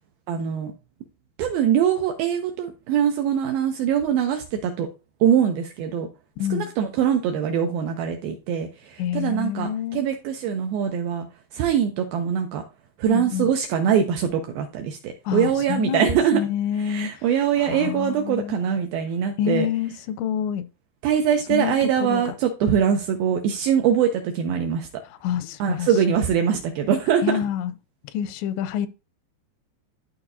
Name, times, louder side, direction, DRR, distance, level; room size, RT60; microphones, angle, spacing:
voice 1, 0.3-0.7 1.4-4.9 5.2-6.1 6.5-11.3 11.5-12.6 13.0-16.4 16.9-19.7 21.0-24.9 25.6-27.2, right 8 dB, 80° right, 2.2 m, -23 dB
voice 2, 6.4-6.7 9.0-10.1 13.0-13.5 15.3-17.3 17.6-18.6 19.4-20.7 21.5-22.3 25.0-25.9 27.2-27.7 28.1-28.9, left 9 dB, 90° left, 2.8 m, -27 dB
12.0 x 4.5 x 2.6 m
omnidirectional pair, 5.0 m